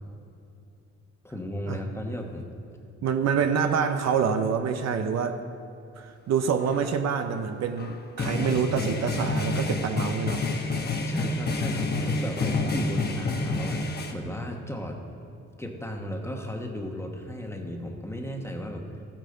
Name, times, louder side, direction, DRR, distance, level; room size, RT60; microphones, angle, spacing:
voice 1, 1.2-2.5 11.1-15.0 15.6-18.8, equal, 10° left, 2 dB, 1.3 m, -35 dB
voice 2, 3.0-5.4 6.0-10.4, right 6 dB, 60° right, 7 dB, 0.7 m, -26 dB
sound 1, 6.6-6.8 7.8-14.1, left 3 dB, 35° left, 1.1 m, -28 dB
14.5 x 8.8 x 3.9 m, 2.6 s
cardioid pair, 90°, 30 cm